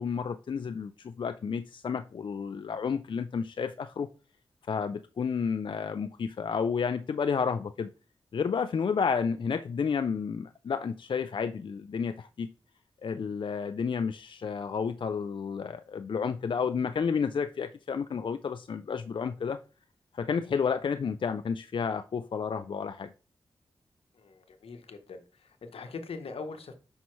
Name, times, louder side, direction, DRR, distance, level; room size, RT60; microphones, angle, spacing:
voice 1, 0.0-4.1 4.7-7.9 8.3-12.5 13.0-19.6 20.1-23.1, left 6 dB, 60° left, 0.4 m, -31 dB
voice 2, 24.1-26.7, left 4 dB, 85° left, 0.9 m, -42 dB
5.7 x 5.4 x 3.1 m
cardioid pair, 50°, 10 cm